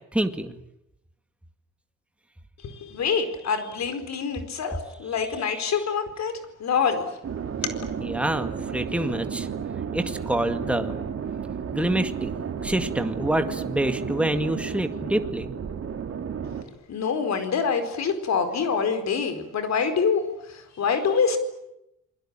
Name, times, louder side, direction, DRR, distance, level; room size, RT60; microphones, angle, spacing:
voice 1, 0.1-0.6 8.0-9.5 9.9-10.9 11.7-12.3 12.6-15.5, right 1 dB, 5° right, 7 dB, 2.0 m, -26 dB
voice 2, 2.6-7.1 16.9-20.2 20.5-21.4, left 6 dB, 65° left, 9 dB, 4.7 m, -26 dB
sound 1, 7.2-16.6, right 7 dB, 50° right, 2.9 m, -32 dB
28.5 x 21.5 x 8.9 m, 0.85 s
cardioid pair, 90°, 30 cm